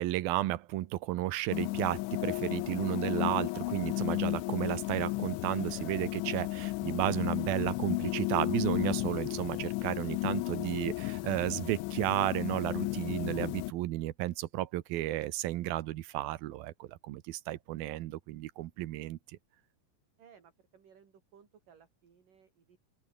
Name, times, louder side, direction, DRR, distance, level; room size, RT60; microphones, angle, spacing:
voice 1, 0.0-19.4, right 16 dB, 75° right, 2.4 m, -33 dB
sound 1, 1.5-13.7, left 21 dB, 90° left, 3.1 m, -34 dB
voice 2, 20.2-22.8, right 7 dB, 50° right, 5.0 m, -60 dB
open air
omnidirectional pair, 5.2 m